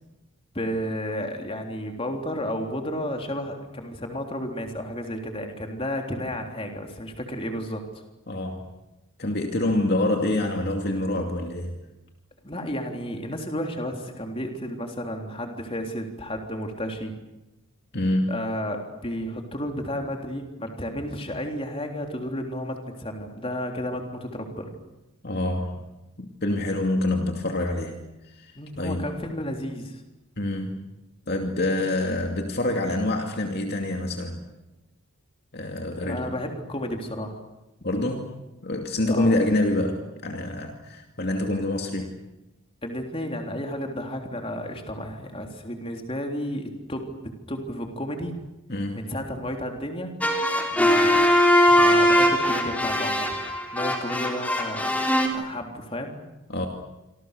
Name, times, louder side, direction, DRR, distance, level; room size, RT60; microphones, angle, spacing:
voice 1, 0.5-7.8 12.4-17.1 18.3-24.7 28.5-30.0 35.9-37.4 39.1-39.4 42.8-47.0 47.5-48.4 48.9-50.2 50.7-51.2 51.7-53.3 53.7-56.1, equal, 25° left, 3 dB, 3.6 m, -32 dB
voice 2, 8.3-8.7 9.2-11.7 17.9-18.4 25.2-25.8 26.2-28.0 28.4-28.5 28.8-29.0 30.4-30.8 31.3-34.4 35.5-36.3 37.8-38.3 38.6-42.1 48.7-49.0 56.5-56.7, left 1 dB, 45° left, 3 dB, 2.6 m, -26 dB
sound 1, 50.2-55.3, equal, 5° left, 3.5 m, -21 dB
27.0 x 26.5 x 6.8 m, 0.99 s
head